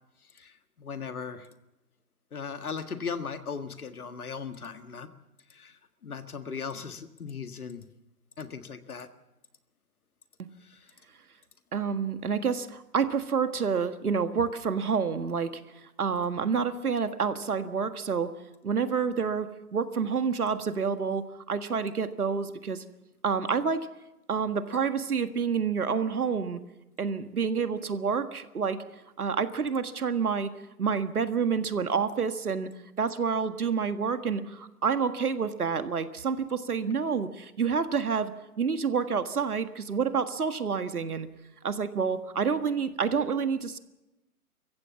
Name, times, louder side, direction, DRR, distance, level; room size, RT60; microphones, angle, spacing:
voice 1, 0.4-1.5 2.3-5.1 5.5-5.8 6.0-7.8 8.4-9.1 10.6-10.8, left 6 dB, 70° left, 9 dB, 1.8 m, -38 dB
voice 2, 11.7-15.6 16.0-18.4 18.6-22.8 23.2-23.9 24.3-26.6 27.0-28.8 29.2-30.5 30.8-32.7 33.0-41.3 41.6-43.8, right 6 dB, 70° right, 10 dB, 1.7 m, -28 dB
25.0 x 15.0 x 7.2 m, 0.98 s
figure-of-eight pair, 145°, 46 cm